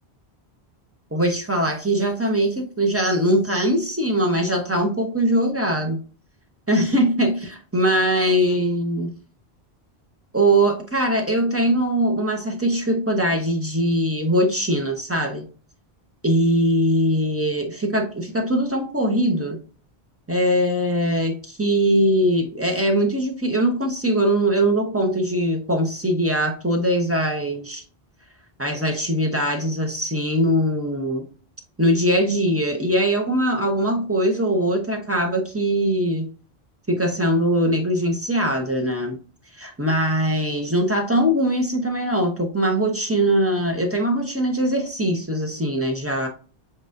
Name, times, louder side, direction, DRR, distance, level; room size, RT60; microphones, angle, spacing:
voice 1, 1.1-6.0 6.7-9.1 10.3-15.5 16.2-19.6 20.3-27.8 28.6-31.2 31.8-36.3 36.9-39.2 39.6-46.3, right 1 dB, 15° right, 2 dB, 0.7 m, -21 dB
7.5 x 2.5 x 2.5 m, 0.38 s
omnidirectional pair, 1.1 m